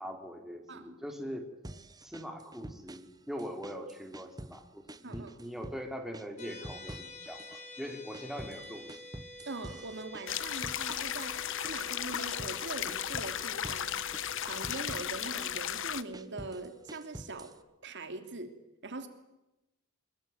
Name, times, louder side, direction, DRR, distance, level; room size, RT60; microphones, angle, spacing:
voice 1, 0.0-1.5 2.0-9.0, equal, ahead, 3 dB, 3.6 m, -42 dB
sound 1, 1.6-3.1 3.4-4.6 4.9-5.8 6.1-7.6 7.9-12.6 12.9-13.8 14.1-15.5 15.9-17.6, right 1 dB, 20° right, 1.2 m, -47 dB
voice 2, 5.0-5.3 9.5-14.0 14.4-17.5 17.8-18.6 18.8-19.1, right 3 dB, 55° right, 7 dB, 3.1 m, -42 dB
sound 2, 6.4-17.5, left 1 dB, 35° left, 5.6 m, -51 dB
sound 3, 10.3-16.0, left 10 dB, 65° left, 1.2 m, -35 dB
25.0 x 23.0 x 9.4 m, 0.94 s
head